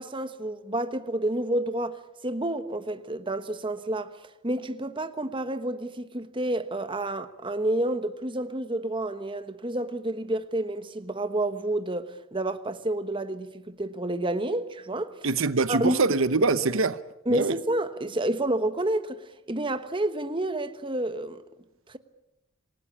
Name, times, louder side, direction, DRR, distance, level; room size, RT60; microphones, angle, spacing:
voice 1, 0.0-4.1 4.4-15.1 15.7-16.0 17.3-21.4, right 1 dB, 25° right, 1.2 m, -29 dB
voice 2, 15.2-17.0 17.3-17.6, right 3 dB, 70° right, 0.9 m, -24 dB
27.5 x 19.5 x 8.7 m
head